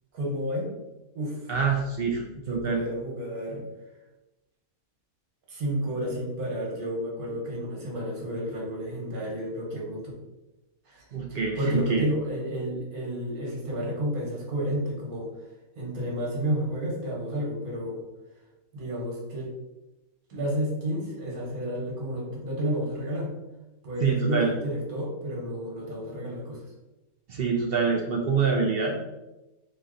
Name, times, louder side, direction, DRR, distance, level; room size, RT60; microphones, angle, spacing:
voice 1, 0.1-0.7 1.2-1.6 2.5-3.6 5.5-10.1 10.9-11.0 11.3-15.3 15.8-18.1 18.7-19.5 20.3-23.3 23.8-26.6, equal, 85° right, -2 dB, 1.7 m, -31 dB
voice 2, 1.5-2.8 11.1-12.1 24.0-24.5 27.3-28.9, right 5 dB, 60° right, 1 dB, 0.6 m, -25 dB
3.9 x 3.0 x 3.7 m, 1.0 s
omnidirectional pair, 1.5 m